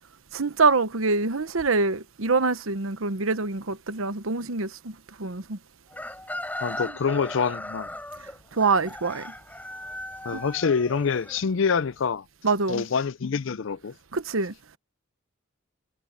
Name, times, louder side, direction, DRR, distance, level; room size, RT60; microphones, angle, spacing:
voice 1, 0.3-5.6 8.5-9.3 10.3-10.4 12.4-12.8 14.1-14.5, right 4 dB, 80° right, 1.0 m, -25 dB
Chicken rooster, 5.9-11.9, left 1 dB, 10° left, 8.0 m, -37 dB
voice 2, 6.6-7.9 10.2-12.2 12.7-13.9, left 5 dB, 65° left, 0.5 m, -26 dB
head